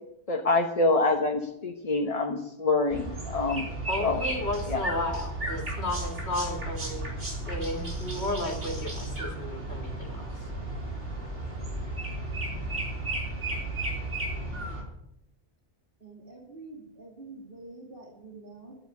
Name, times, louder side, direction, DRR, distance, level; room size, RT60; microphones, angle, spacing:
voice 1, 0.3-3.7 4.0-4.2 4.7-4.8, left 3 dB, 35° left, 3 dB, 1.2 m, -26 dB
sound 1, 2.9-14.8, right 2 dB, 90° right, 4.3 m, -34 dB
voice 2, 3.9-7.1 7.5-10.5, left 1 dB, 65° left, 2 dB, 2.4 m, -33 dB
voice 3, 16.0-18.7, right 3 dB, 50° right, 0 dB, 2.9 m, -46 dB
12.0 x 9.1 x 9.4 m, 0.79 s
omnidirectional pair, 1.2 m